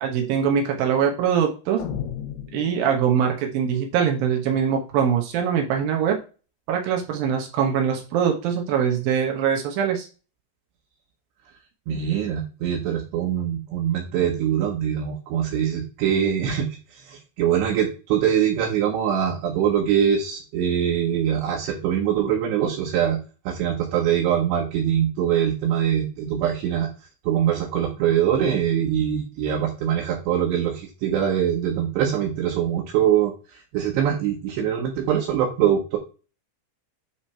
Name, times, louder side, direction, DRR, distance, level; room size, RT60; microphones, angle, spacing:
voice 1, 0.0-1.8 2.5-6.2 6.7-10.1, right 8 dB, 90° right, 2 dB, 2.0 m, -23 dB
sound 1, 1.8-3.4, left 9 dB, 70° left, 3.4 m, -34 dB
voice 2, 11.9-23.2 23.5-26.9 27.2-36.0, right 9 dB, 70° right, -1 dB, 2.9 m, -23 dB
9.8 x 3.3 x 4.3 m, 0.33 s
omnidirectional pair, 5.9 m